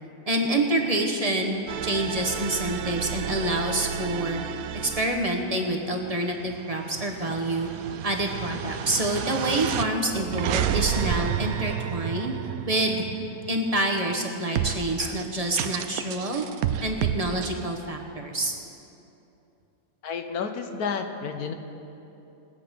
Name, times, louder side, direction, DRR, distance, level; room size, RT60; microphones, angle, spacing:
voice 1, 0.3-4.4 4.7-7.7 8.0-12.3 12.7-13.1 13.5-16.5 16.8-18.5, right 1 dB, 25° right, 2 dB, 1.1 m, -27 dB
sound 1, 1.7-5.2 5.7-13.9 14.6-17.5, right 9 dB, 80° right, 1.1 m, -31 dB
voice 2, 20.0-21.5, left 5 dB, 80° left, 6 dB, 1.3 m, -31 dB
20.5 x 7.9 x 5.1 m, 2.8 s
omnidirectional pair, 1.6 m